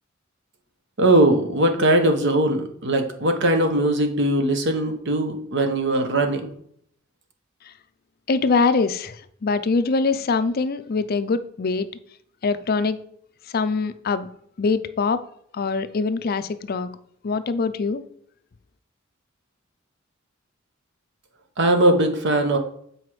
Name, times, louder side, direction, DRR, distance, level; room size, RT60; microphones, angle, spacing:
voice 1, 1.0-6.5 21.6-22.6, right 1 dB, 60° right, 6 dB, 1.1 m, -20 dB
voice 2, 8.3-11.9 12.4-13.0 13.5-14.3 14.6-15.2 15.5-16.9 17.2-18.0, left 4 dB, 50° left, 12 dB, 0.5 m, -23 dB
7.8 x 4.9 x 4.8 m, 0.66 s
head